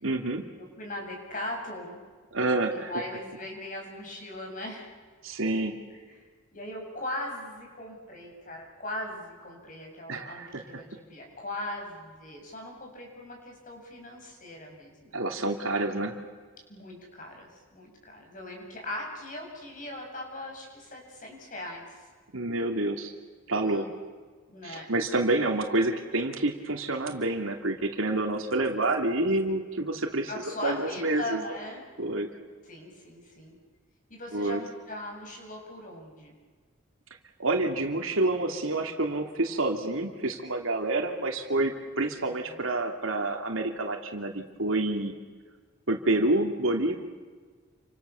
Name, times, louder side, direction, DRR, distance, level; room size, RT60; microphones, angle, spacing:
voice 1, 0.0-0.4 2.3-2.9 5.2-5.7 10.1-10.6 15.1-16.2 22.3-23.1 23.5-23.9 24.6-30.3 30.6-31.4 32.0-32.3 34.3-34.6 37.4-45.1 45.9-47.0, right 2 dB, 85° right, 3 dB, 2.8 m, -28 dB
voice 2, 0.6-2.0 2.7-4.9 5.9-6.2 6.5-15.2 16.7-22.1 23.6-23.9 24.5-24.9 30.3-31.8 32.6-33.6 34.1-36.3 42.2-42.6, left 1 dB, 40° left, 1 dB, 7.4 m, -39 dB
29.5 x 25.5 x 7.1 m, 1.5 s
head